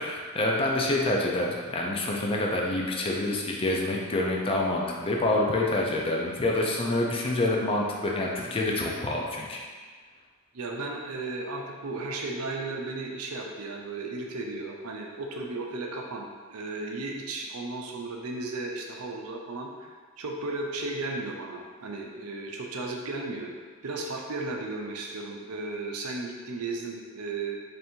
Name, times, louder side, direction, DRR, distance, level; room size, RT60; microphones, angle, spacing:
voice 1, 0.0-9.6, left 2 dB, 25° left, -1 dB, 0.5 m, -27 dB
voice 2, 10.5-23.5 23.8-27.6, right 3 dB, 85° right, 0 dB, 0.6 m, -35 dB
3.4 x 2.6 x 4.4 m, 1.5 s
head